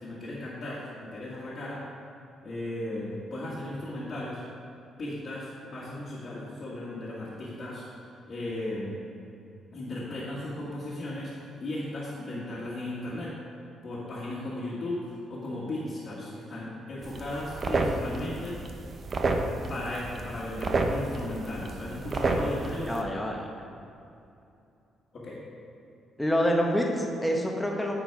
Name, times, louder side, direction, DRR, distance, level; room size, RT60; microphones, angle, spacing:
voice 1, 0.0-1.8 2.4-4.4 5.0-7.8 8.3-9.0 9.7-13.3 13.8-18.6 19.7-23.1 25.1-25.4, left 1 dB, 45° left, -9 dB, 1.7 m, -36 dB
sound 1, 17.0-23.0, right 2 dB, 40° right, 0.7 m, -31 dB
voice 2, 22.9-23.5 26.2-27.9, equal, 5° left, 0 dB, 1.0 m, -27 dB
9.0 x 4.4 x 4.8 m, 2.7 s
cardioid pair, 90°, 0 cm